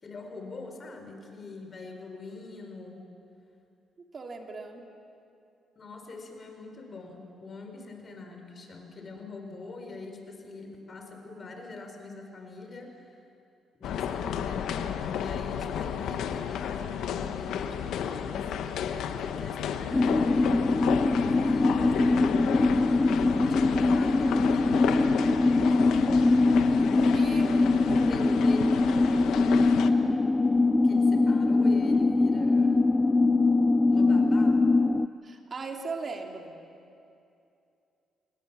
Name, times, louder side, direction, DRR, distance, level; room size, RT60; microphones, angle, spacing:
voice 1, 0.0-3.1 5.8-13.2 13.8-22.5 23.1-26.4 27.2-30.2 30.8-32.8 33.8-34.7, left 3 dB, 40° left, 4 dB, 4.5 m, -43 dB
voice 2, 4.1-4.9 21.7-22.0 26.6-28.4 35.2-36.6, right 3 dB, 40° right, 3 dB, 2.6 m, -38 dB
sound 1, 13.8-29.9, left 8 dB, 80° left, 1.3 m, -32 dB
sound 2, 19.9-35.1, left 3 dB, 20° left, 0.5 m, -23 dB
27.0 x 20.5 x 7.4 m, 2.6 s
cardioid pair, 90°, 0 cm